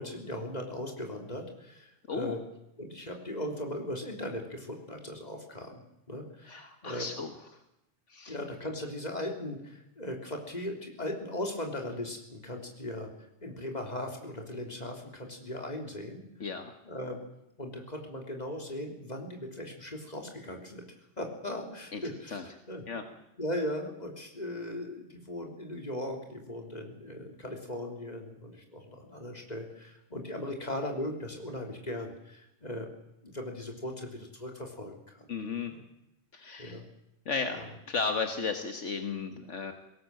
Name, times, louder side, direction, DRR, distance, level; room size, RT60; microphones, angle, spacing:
voice 1, 0.0-2.4 2.8-5.8 6.1-7.1 8.3-16.2 16.8-17.2 17.6-20.8 21.2-22.8 23.4-32.9 33.2-35.3 35.6-35.8 36.6-36.8 37.5-37.7, left 1 dB, 35° left, 2 dB, 3.7 m, -38 dB
voice 2, 6.5-7.3 8.1-8.4 16.4-16.7 21.9-22.0 22.3-22.4 22.9-23.0 35.3-35.7 36.3-36.8 37.3-39.7, left 5 dB, 70° left, 6 dB, 1.8 m, -34 dB
21.0 x 18.0 x 7.7 m, 0.85 s
omnidirectional pair, 1.3 m